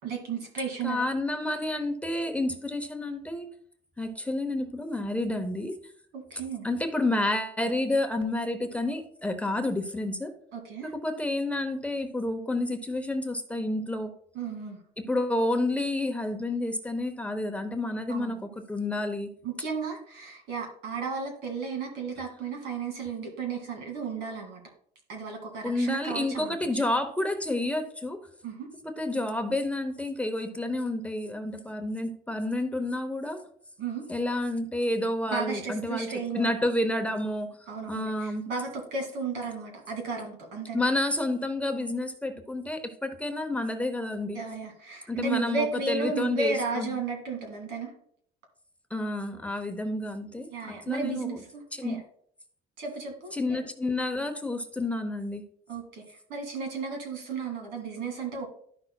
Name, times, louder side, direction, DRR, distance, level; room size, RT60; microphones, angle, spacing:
voice 1, 0.0-1.1 6.1-6.7 10.5-10.9 14.3-14.8 18.1-18.5 19.4-24.6 25.1-26.8 28.4-28.7 33.8-34.0 35.3-36.5 37.7-40.8 44.3-47.9 50.5-52.0 52.8-53.6 55.7-58.5, right 4 dB, 85° right, 2.2 m, -34 dB
voice 2, 0.8-3.5 4.0-5.7 6.6-10.3 10.8-14.1 15.0-19.3 25.6-28.2 28.8-33.5 34.1-37.6 37.9-38.5 40.7-44.4 45.1-47.0 48.9-51.4 51.7-52.0 53.3-55.5, left 1 dB, 10° left, 0.7 m, -30 dB
12.0 x 5.6 x 2.3 m
cardioid pair, 110°, 17 cm